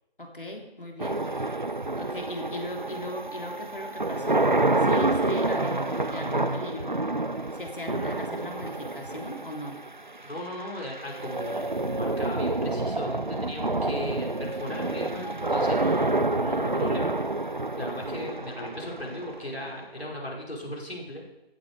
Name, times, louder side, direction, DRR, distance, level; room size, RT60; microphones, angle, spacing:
voice 1, 0.2-1.2 2.0-4.5 4.8-7.0 7.5-9.8, left 1 dB, 55° left, 2 dB, 3.3 m, -38 dB
sound 1, 1.0-20.0, right 2 dB, 50° right, 0.6 m, -28 dB
voice 2, 10.2-17.2 17.8-21.2, left 1 dB, 80° left, -2 dB, 5.7 m, -37 dB
15.0 x 12.0 x 5.0 m, 0.97 s
figure-of-eight pair, 180°, 31 cm